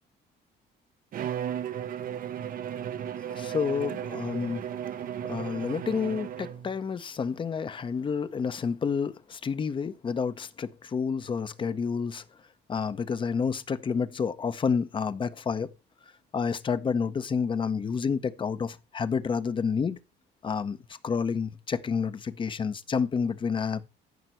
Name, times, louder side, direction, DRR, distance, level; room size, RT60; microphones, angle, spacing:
Bowed string instrument, 1.1-6.8, right 9 dB, 50° right, 0.7 m, -35 dB
voice 1, 3.3-4.7 5.3-12.2 12.7-15.7 16.3-20.0 20.4-23.9, left 6 dB, 25° left, 0.7 m, -29 dB
13.5 x 5.9 x 4.4 m
cardioid pair, 150°, 18 cm